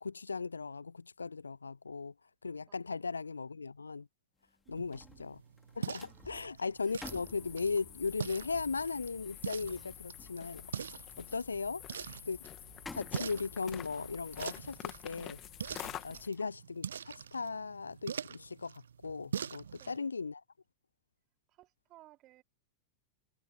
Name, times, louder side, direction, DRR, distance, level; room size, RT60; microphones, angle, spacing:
voice 1, 0.0-2.1 2.4-4.1 4.7-5.4 5.8-10.7 11.2-11.8 12.3-12.4 12.9-15.4 16.0-20.4, left 4 dB, 75° left, 0.6 m, -37 dB
voice 2, 2.7-3.0 4.6-5.3 6.3-7.0 11.1-11.4 16.1-16.3 19.7-20.1 21.5-22.4, right 16 dB, 35° right, 3.3 m, -62 dB
sound 1, 4.4-17.8 18.2-18.4, left 3 dB, 10° left, 4.0 m, -55 dB
sound 2, 4.8-20.0, right 7 dB, 70° right, 0.4 m, -44 dB
sound 3, 6.8-16.3, left 12 dB, 30° left, 2.5 m, -48 dB
figure-of-eight pair, 90°, 0 cm